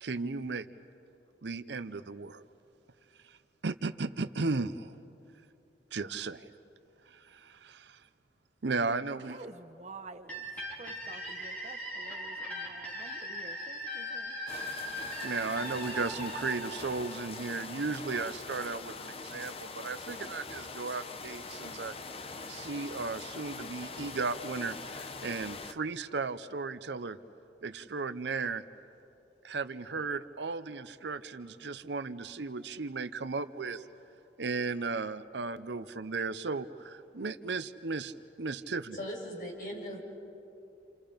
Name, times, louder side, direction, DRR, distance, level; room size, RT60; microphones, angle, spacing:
voice 1, 0.0-0.7 1.4-2.4 3.3-3.4 3.6-4.9 5.9-6.5 7.1-8.0 8.6-9.4 15.2-21.9 22.5-27.2 27.6-28.6 29.4-33.8 34.4-39.0, right 4 dB, 80° right, 0.7 m, -35 dB
voice 2, 9.1-10.4 10.7-14.4, right 3 dB, 40° right, 1.1 m, -49 dB
sound 1, 10.3-17.9, equal, 10° left, 3.8 m, -40 dB
sound 2, 14.5-25.7, left 4 dB, 35° left, 0.8 m, -43 dB
voice 3, 38.9-40.0, equal, 50° left, 5.8 m, -39 dB
29.0 x 28.5 x 5.2 m
head